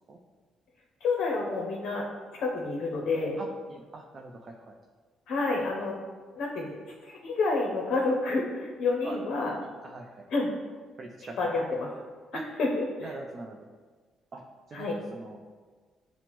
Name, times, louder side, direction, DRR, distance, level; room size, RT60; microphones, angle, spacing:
voice 1, 1.0-2.1 2.3-3.4 5.3-6.0 6.4-6.8 7.0-9.5 10.3-10.5 11.4-11.9 12.6-13.1 14.7-15.0, left 3 dB, 70° left, -1 dB, 0.5 m, -29 dB
voice 2, 3.4-4.8 9.0-9.2 9.8-10.3 11.0-11.5 12.3-12.4 13.0-13.7 14.3-15.4, right 2 dB, 40° right, 1 dB, 0.3 m, -43 dB
5.9 x 2.0 x 2.9 m, 1.5 s
cardioid pair, 90°, 0 cm